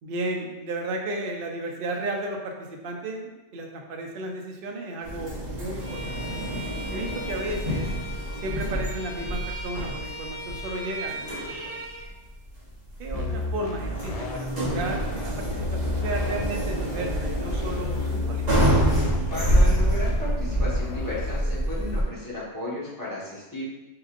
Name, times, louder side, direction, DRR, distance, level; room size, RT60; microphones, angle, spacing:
voice 1, 0.0-6.4 6.9-7.9 8.4-11.8 13.0-18.4, right 2 dB, 55° right, 2 dB, 0.7 m, -34 dB
sound 1, 5.0-22.0, equal, 35° right, 1.1 m, -27 dB
Bowed string instrument, 5.8-12.1, right 1 dB, 80° right, 1.0 m, -38 dB
sound 2, 13.1-21.4, left 3 dB, 70° left, 0.3 m, -33 dB
voice 2, 19.3-23.6, left 1 dB, 15° left, -9 dB, 1.3 m, -34 dB
4.4 x 3.8 x 2.5 m, 1.1 s
omnidirectional pair, 1.2 m